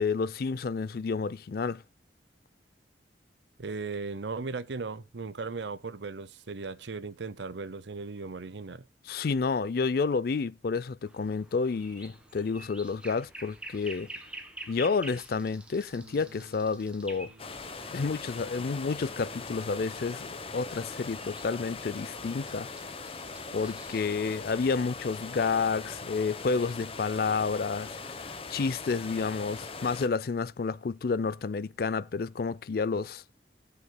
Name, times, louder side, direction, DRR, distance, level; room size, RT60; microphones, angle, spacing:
voice 1, 0.0-1.8 9.1-14.1 14.7-17.3 17.9-22.7 23.5-28.2 28.5-33.2, left 4 dB, 55° left, 0.4 m, -30 dB
voice 2, 3.6-8.9, right 4 dB, 80° right, 0.8 m, -37 dB
sound 1, 11.1-24.0, right 1 dB, 5° right, 1.6 m, -49 dB
sound 2, 15.9-22.2, right 1 dB, 65° right, 2.2 m, -58 dB
sound 3, 17.4-30.1, left 4 dB, 30° left, 1.0 m, -41 dB
20.5 x 6.9 x 2.2 m
head